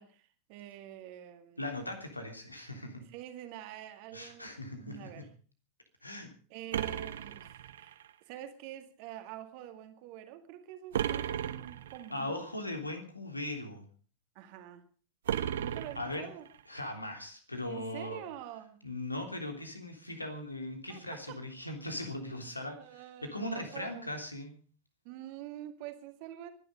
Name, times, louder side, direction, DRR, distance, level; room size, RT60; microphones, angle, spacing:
voice 1, 0.0-1.8 3.1-4.5 4.8-5.3 6.5-12.5 14.4-14.8 15.6-16.5 17.7-18.8 20.9-21.4 22.7-24.1 25.0-26.5, right 12 dB, 45° right, 8 dB, 2.1 m, -46 dB
voice 2, 1.6-3.0 4.1-5.2 6.0-6.3 12.1-13.8 15.9-16.3 16.7-18.2 18.8-24.6, left 1 dB, 85° left, 5 dB, 3.2 m, -39 dB
sound 1, 6.7-8.1 10.9-12.1 15.3-16.6, right 9 dB, 60° right, 1.0 m, -35 dB
24.0 x 11.0 x 5.2 m, 0.41 s
figure-of-eight pair, 90°, 0 cm